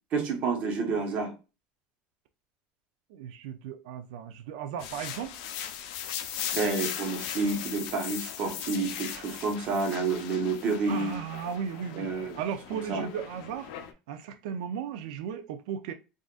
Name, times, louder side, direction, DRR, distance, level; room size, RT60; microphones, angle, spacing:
voice 1, 0.1-1.3 6.5-11.2 11.9-12.4 12.9-13.1, right 4 dB, 40° right, 1.0 m, -29 dB
voice 2, 3.1-5.4 10.9-12.1 12.3-13.7 14.1-15.9, right 8 dB, 85° right, 0.4 m, -36 dB
sound 1, 4.8-13.9, left 9 dB, 75° left, 0.5 m, -38 dB
3.7 x 2.5 x 2.3 m
cardioid pair, 165°, 4 cm